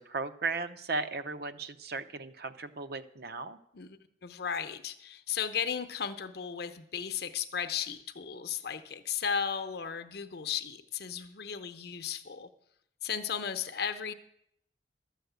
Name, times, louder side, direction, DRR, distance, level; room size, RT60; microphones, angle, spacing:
voice 1, 0.0-3.6, right 3 dB, 60° right, 10 dB, 0.7 m, -36 dB
voice 2, 3.7-12.5 13.0-14.1, left 7 dB, 60° left, 9 dB, 0.8 m, -35 dB
12.5 x 6.5 x 8.1 m, 0.74 s
head